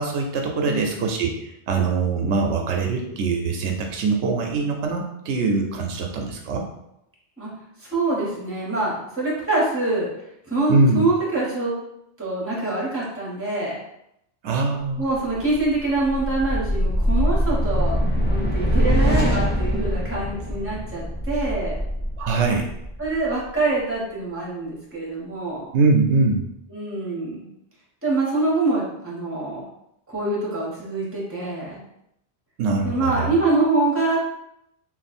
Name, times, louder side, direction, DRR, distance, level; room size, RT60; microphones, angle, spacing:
voice 1, 0.0-6.6 10.7-11.1 14.4-15.1 22.2-22.7 25.7-26.4 32.6-33.3, right 3 dB, 80° right, 2 dB, 0.9 m, -22 dB
voice 2, 0.7-1.0 7.4-7.5 7.8-10.1 10.5-11.7 12.2-13.8 15.0-18.0 18.2-21.8 23.0-25.7 26.7-27.5 28.0-29.7 30.1-31.8 32.8-34.2, right 2 dB, 10° right, -5 dB, 1.2 m, -25 dB
sound 1, 15.3-23.5, equal, 10° left, 0.6 m, -23 dB
3.2 x 2.5 x 4.2 m, 0.80 s
omnidirectional pair, 1.2 m